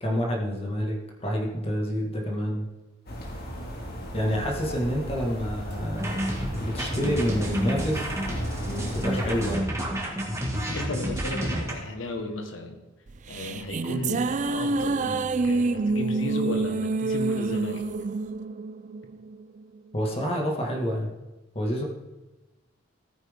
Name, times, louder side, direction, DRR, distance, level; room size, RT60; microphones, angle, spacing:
voice 1, 0.0-2.7 4.1-6.2 6.6-8.1 8.7-9.7 19.9-21.1 21.5-21.8, equal, 30° left, 0 dB, 1.8 m, -28 dB
sound 1, 3.1-9.6, equal, 55° left, 2.2 m, -35 dB
sound 2, 6.0-11.7, equal, 15° right, 1.9 m, -30 dB
voice 2, 10.7-12.8 13.3-17.9, left 2 dB, 80° left, 5 dB, 1.5 m, -34 dB
sound 3, 13.1-19.6, right 3 dB, 40° right, 0.4 m, -27 dB
14.0 x 9.1 x 3.7 m, 1.1 s
head